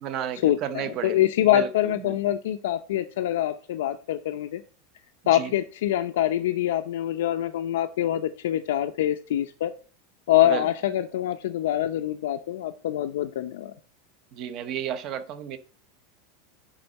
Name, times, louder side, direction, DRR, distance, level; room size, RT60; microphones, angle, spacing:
voice 1, 0.0-2.3 5.3-5.5 10.4-10.7 14.3-15.6, right 9 dB, 35° right, 0.8 m, -33 dB
voice 2, 1.0-4.6 5.3-9.7 10.3-13.7, left 12 dB, 90° left, 0.5 m, -25 dB
9.0 x 3.8 x 5.3 m
supercardioid pair, 170°, 0 cm